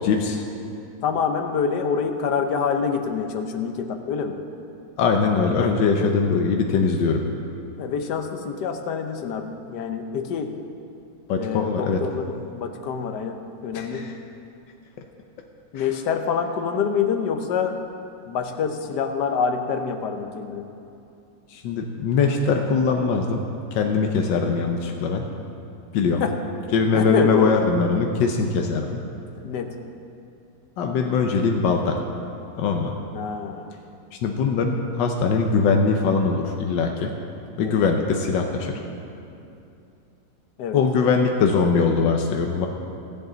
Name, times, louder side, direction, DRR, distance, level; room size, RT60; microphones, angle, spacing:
voice 1, 0.0-0.4 5.0-7.2 11.3-12.0 13.7-14.1 15.7-15.9 21.5-23.4 23.7-25.2 25.9-26.2 26.7-29.0 30.8-32.0 32.6-32.9 34.2-37.1 37.6-38.8 40.7-42.7, left 5 dB, 85° left, 3 dB, 1.5 m, -21 dB
voice 2, 1.0-4.4 6.0-6.1 7.8-10.5 11.4-14.1 15.7-17.8 18.3-20.7 26.2-26.4 26.9-27.6 29.4-29.7 33.1-33.7 37.6-37.8 40.6-40.8, left 6 dB, 70° left, 6 dB, 1.4 m, -26 dB
22.5 x 8.0 x 3.9 m, 2.7 s
omnidirectional pair, 1.9 m